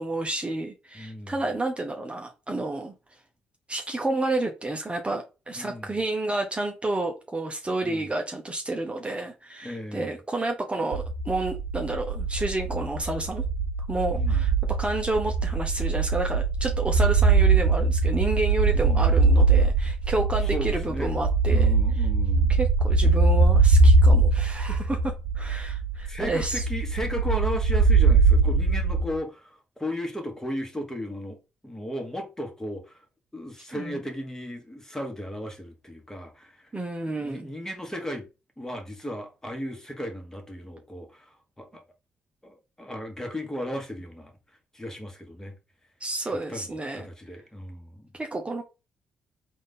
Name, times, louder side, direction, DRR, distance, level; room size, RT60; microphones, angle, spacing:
voice 1, 0.0-2.9 3.7-13.4 13.9-14.5 14.8-22.1 22.5-26.6 33.7-34.0 36.7-37.5 46.0-47.1 48.1-48.6, right 2 dB, 20° right, 0.8 m, -30 dB
voice 2, 0.9-1.3 5.5-6.0 7.8-8.1 9.6-10.2 14.1-14.4 18.7-19.1 20.4-22.6 26.1-31.4 31.6-33.0 33.3-36.7 37.2-38.3 38.6-41.8 42.4-44.3 44.7-45.5 46.3-48.1, equal, 10° left, 1.5 m, -35 dB
sound 1, 10.9-29.2, right 3 dB, 65° right, 0.8 m, -22 dB
3.8 x 2.6 x 3.8 m
hypercardioid pair, 45°, 5 cm